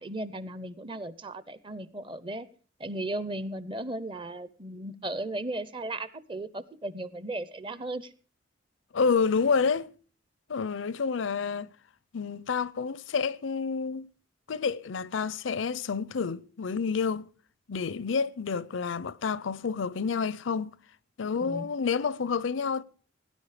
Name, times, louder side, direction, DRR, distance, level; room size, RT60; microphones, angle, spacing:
voice 1, 0.0-2.5 2.8-8.1 21.4-21.7, right 1 dB, 25° right, 0.7 m, -36 dB
voice 2, 8.9-9.9 10.5-11.7 12.1-14.1 14.5-17.3 17.7-20.7 21.2-22.8, left 5 dB, 80° left, 0.5 m, -29 dB
17.5 x 10.0 x 4.9 m
head